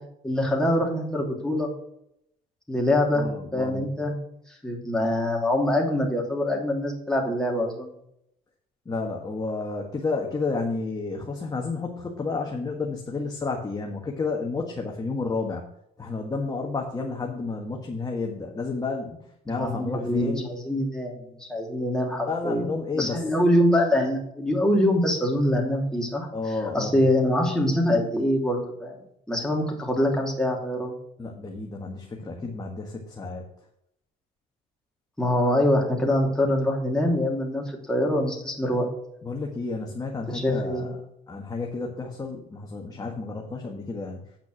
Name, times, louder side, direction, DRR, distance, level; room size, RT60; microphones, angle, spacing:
voice 1, 0.2-1.7 2.7-3.2 3.5-4.1 4.5-7.9 19.5-22.7 23.0-26.3 26.7-29.0 29.3-31.0 35.2-38.9 40.3-41.0, left 1 dB, 5° left, -1 dB, 3.1 m, -24 dB
voice 2, 3.1-3.9 8.8-15.6 16.0-19.2 19.5-20.5 22.3-23.3 26.3-27.0 31.2-33.4 39.2-41.0 41.3-44.2, left 3 dB, 20° left, 0 dB, 1.5 m, -31 dB
8.9 x 5.9 x 6.2 m, 0.76 s
cardioid pair, 110°, 17 cm